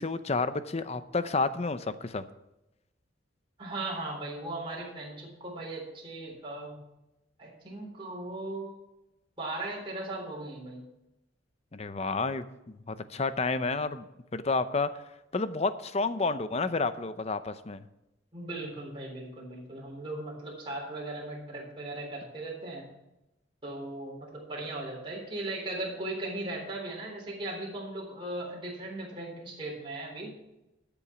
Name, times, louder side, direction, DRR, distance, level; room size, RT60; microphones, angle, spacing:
voice 1, 0.0-2.2 11.7-14.1 14.3-14.9 15.3-17.9, left 3 dB, 35° left, 12 dB, 0.6 m, -30 dB
voice 2, 3.6-6.8 7.4-8.8 9.4-10.8 18.3-22.8 23.6-30.3, right 2 dB, 25° right, -3 dB, 3.7 m, -38 dB
13.0 x 7.1 x 5.8 m, 0.92 s
head